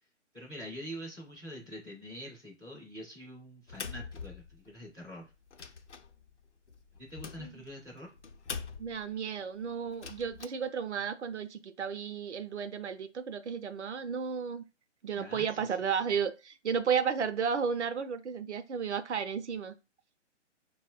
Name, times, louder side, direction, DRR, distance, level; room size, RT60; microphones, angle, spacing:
voice 1, 0.3-5.3 6.9-8.1 15.1-15.9, equal, 5° left, -10 dB, 0.4 m, -45 dB
sound 1, 3.7-4.9 5.3-9.1 9.9-10.5, left 5 dB, 70° left, 0.6 m, -44 dB
voice 2, 8.8-14.6 15.0-19.7, right 6 dB, 70° right, 9 dB, 0.6 m, -33 dB
4.3 x 2.0 x 2.4 m, 0.29 s
figure-of-eight pair, 135°, 36 cm